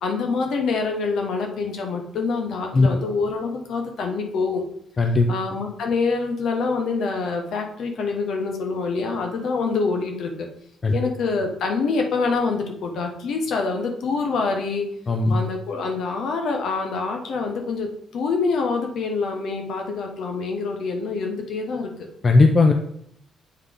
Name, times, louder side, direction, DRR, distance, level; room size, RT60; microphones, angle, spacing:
voice 1, 0.0-4.6 5.3-10.5 10.9-14.9 15.3-22.1, left 4 dB, 70° left, 3 dB, 1.2 m, -26 dB
voice 2, 5.0-5.3 10.8-10.9 15.1-15.3 22.2-22.7, left 3 dB, 35° left, 4 dB, 0.6 m, -16 dB
8.0 x 3.3 x 3.8 m, 0.71 s
cardioid pair, 90°, 0 cm